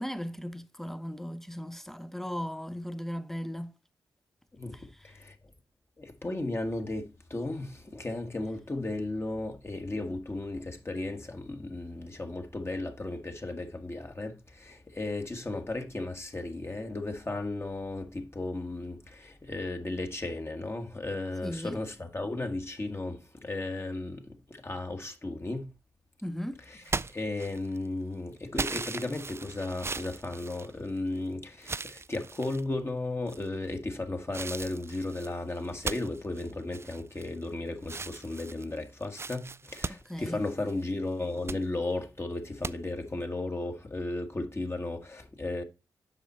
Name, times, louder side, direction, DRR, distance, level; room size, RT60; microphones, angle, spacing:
voice 1, 0.0-3.7 4.7-5.1 21.4-21.8 26.2-26.6 40.1-40.4, equal, 5° left, 0.7 m, -37 dB
voice 2, 4.5-5.3 6.0-25.7 26.7-26.8 27.1-45.6, left 2 dB, 30° left, 1.5 m, -35 dB
sound 1, 26.8-27.9 28.6-31.2 31.6-32.6 33.3-33.7 34.3-37.5 37.8-40.8 41.2-41.6 42.6-42.7, right 4 dB, 30° right, 0.4 m, -38 dB
7.9 x 5.2 x 4.2 m
supercardioid pair, 45°, 9 cm